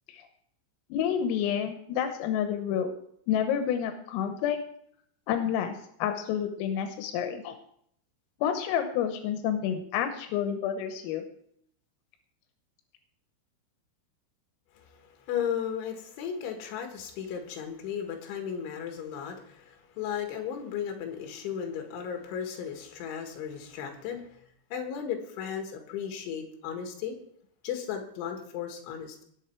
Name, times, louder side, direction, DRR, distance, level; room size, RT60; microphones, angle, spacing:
voice 1, 0.9-3.0 3.3-4.6 5.3-5.8 6.0-7.6 8.4-11.2, left 9 dB, 85° left, 6 dB, 3.7 m, -29 dB
voice 2, 14.8-24.5 24.7-27.2 27.6-29.2, left 8 dB, 70° left, 4 dB, 3.9 m, -35 dB
19.5 x 7.2 x 4.5 m, 0.68 s
omnidirectional pair, 5.8 m